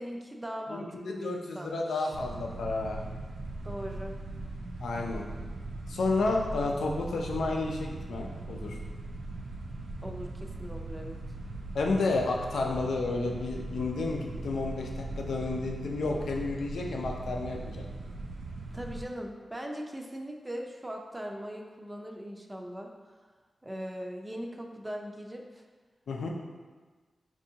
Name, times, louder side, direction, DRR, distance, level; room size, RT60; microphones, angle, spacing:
voice 1, 0.0-2.2 3.6-4.1 10.0-11.2 18.7-22.9 23.6-25.7, equal, 15° right, 1 dB, 0.5 m, -40 dB
voice 2, 0.7-3.0 4.8-5.3 5.9-8.8 11.7-17.9 26.1-26.3, left 3 dB, 85° left, 1 dB, 0.4 m, -31 dB
sound 1, 2.1-19.0, right 2 dB, 85° right, 0.4 m, -39 dB
4.5 x 2.6 x 2.7 m, 1.4 s
cardioid pair, 50°, 0 cm